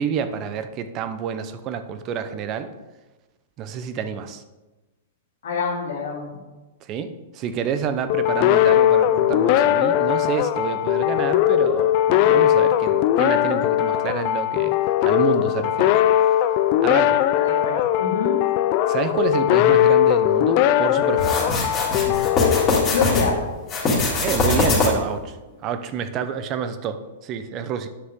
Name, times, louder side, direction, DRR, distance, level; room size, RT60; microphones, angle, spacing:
voice 1, 0.0-2.7 3.6-4.4 6.8-14.8 15.0-15.9 16.8-17.2 18.9-21.5 24.2-25.4 25.6-27.9, right 7 dB, 35° right, 10 dB, 0.7 m, -28 dB
voice 2, 5.4-6.4 17.4-18.4 22.9-23.4, left 5 dB, 75° left, 0 dB, 2.1 m, -26 dB
sound 1, 8.1-23.5, left 12 dB, 45° left, 0.4 m, -19 dB
sound 2, 21.2-23.3 23.7-25.1, left 3 dB, 25° left, 3.0 m, -22 dB
9.7 x 6.3 x 3.7 m, 1.1 s
hypercardioid pair, 135°, 0 cm